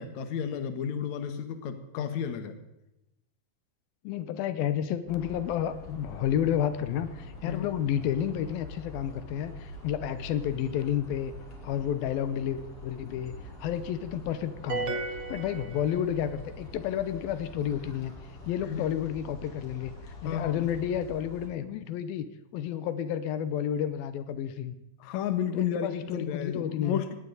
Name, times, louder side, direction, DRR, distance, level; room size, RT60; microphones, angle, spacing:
voice 1, 0.0-2.5 7.5-7.6 18.7-18.9 20.2-20.7 25.0-27.1, left 8 dB, 60° left, 8 dB, 2.4 m, -32 dB
voice 2, 4.0-11.3 11.6-13.3 13.6-18.1 18.5-22.3 22.5-24.8 25.5-27.0, left 10 dB, 85° left, 12 dB, 2.7 m, -31 dB
sound 1, 5.1-21.5, left 1 dB, 40° left, 4.2 m, -45 dB
sound 2, 14.7-16.4, right 3 dB, 70° right, 1.1 m, -34 dB
18.5 x 18.0 x 4.0 m, 0.88 s
omnidirectional pair, 4.1 m